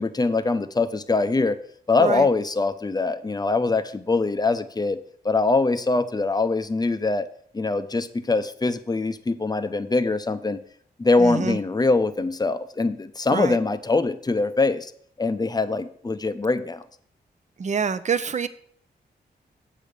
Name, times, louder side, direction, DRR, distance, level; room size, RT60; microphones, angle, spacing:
voice 1, 0.0-1.6 1.9-5.0 5.2-7.3 7.5-10.6 11.0-14.9 15.2-16.8, left 3 dB, 20° left, 11 dB, 0.7 m, -23 dB
voice 2, 11.2-11.6 13.3-13.6 17.6-18.5, right 6 dB, 45° right, 14 dB, 0.6 m, -26 dB
7.5 x 5.3 x 6.5 m, 0.62 s
cardioid pair, 85°, 18 cm